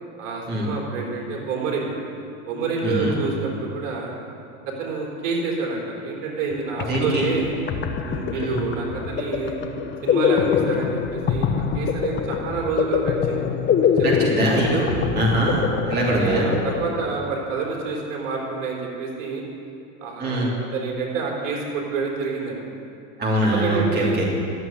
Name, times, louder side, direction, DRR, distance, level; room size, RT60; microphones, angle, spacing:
voice 1, 0.2-1.9 2.5-4.1 4.7-7.5 8.0-9.6 10.0-13.4 14.0-14.1 14.9-15.1 16.2-19.4 20.0-22.6 23.5-24.2, right 4 dB, 60° right, -1 dB, 4.0 m, -28 dB
voice 2, 2.8-3.2 6.8-7.3 8.3-8.6 14.0-16.5 20.2-20.5 23.2-24.2, right 1 dB, 20° right, -4 dB, 3.1 m, -23 dB
sound 1, 6.5-6.6 6.8-17.4, left 7 dB, 25° left, 1.0 m, -24 dB
13.5 x 8.1 x 9.9 m, 2.6 s
hypercardioid pair, 110°, 43 cm